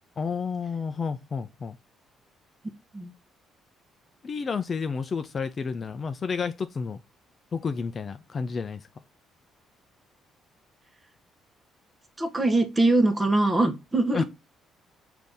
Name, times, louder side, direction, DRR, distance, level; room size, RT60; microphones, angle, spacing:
voice 1, 0.2-1.8 4.2-7.0 7.5-8.9 14.1-14.2, left 5 dB, 30° left, 0.3 m, -30 dB
voice 2, 12.2-14.2, right 2 dB, 15° right, 0.8 m, -22 dB
5.6 x 2.6 x 3.4 m
cardioid pair, 135°, 0 cm